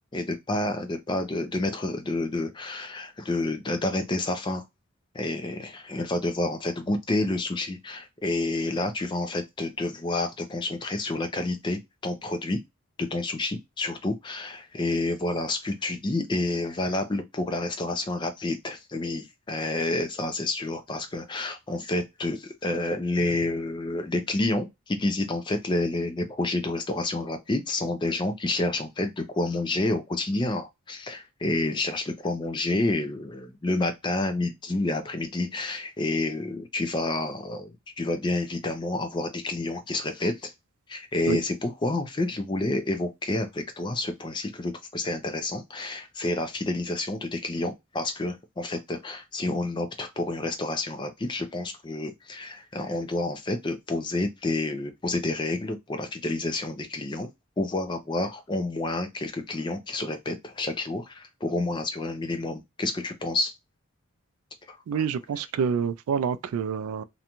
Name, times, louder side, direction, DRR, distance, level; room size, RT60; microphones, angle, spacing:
voice 1, 0.1-4.6 5.1-12.6 13.0-40.5 40.9-57.3 57.6-63.5 64.7-65.0, left 2 dB, 20° left, 0.4 m, -29 dB
voice 2, 64.9-67.0, right 6 dB, 85° right, 0.3 m, -27 dB
2.5 x 2.2 x 2.8 m
head